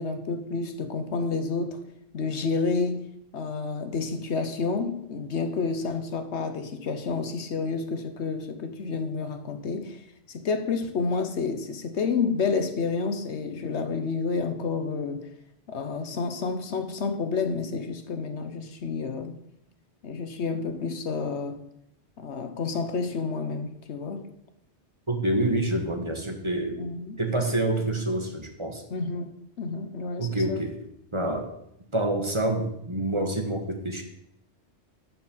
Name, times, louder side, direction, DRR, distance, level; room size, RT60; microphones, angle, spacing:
voice 1, 0.0-1.8 2.1-10.0 10.3-15.3 15.7-19.4 20.0-21.6 22.2-24.3 26.8-27.2 28.9-30.6, left 4 dB, 75° left, 1.2 m, -30 dB
voice 2, 25.1-26.8 27.2-28.8 30.2-30.8 31.1-31.5 31.9-34.0, right 1 dB, 25° right, 1.4 m, -27 dB
11.5 x 4.4 x 7.3 m
omnidirectional pair, 1.2 m